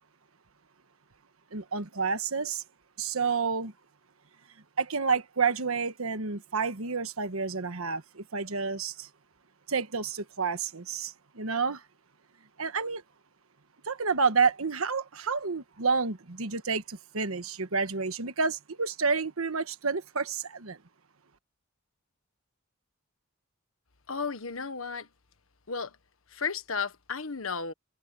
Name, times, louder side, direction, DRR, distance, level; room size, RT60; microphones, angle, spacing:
voice 1, 1.5-2.6 3.0-3.7 4.8-9.1 9.7-11.8 12.6-13.0 13.8-20.8, right 5 dB, 90° right, 1.4 m, -29 dB
voice 2, 24.1-25.1 25.7-26.0 26.3-27.7, left 5 dB, 75° left, 1.4 m, -33 dB
head